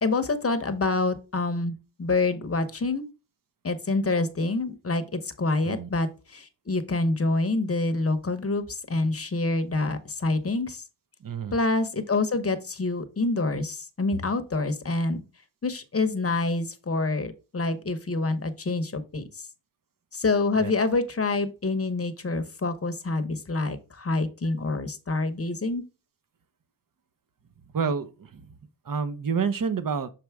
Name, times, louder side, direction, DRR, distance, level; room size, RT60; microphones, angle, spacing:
voice 1, 0.0-3.1 3.6-10.8 11.5-15.2 15.6-19.2 20.1-25.8, left 3 dB, 30° left, 0.9 m, -27 dB
voice 2, 11.2-11.6 20.6-20.7 27.7-28.5 28.9-30.1, right 6 dB, 45° right, 0.8 m, -28 dB
6.4 x 4.6 x 3.5 m
wide cardioid pair, 115°, 47 cm